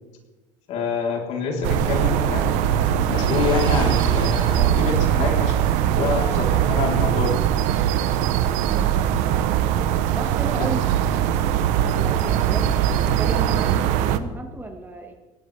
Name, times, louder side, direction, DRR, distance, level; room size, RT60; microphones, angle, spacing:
voice 1, 0.7-7.4 10.6-10.7 11.3-11.4, left 5 dB, 65° left, 0 dB, 3.9 m, -27 dB
sound 1, 1.6-14.2, right 10 dB, 80° right, 1.0 m, -21 dB
Waves surf, 2.9-5.0, right 4 dB, 50° right, 6.0 m, -34 dB
voice 2, 8.7-9.1 10.1-10.8 11.8-15.1, right 2 dB, 15° right, 4 dB, 1.8 m, -34 dB
20.5 x 17.0 x 3.5 m, 1.2 s
cardioid pair, 120°, 12 cm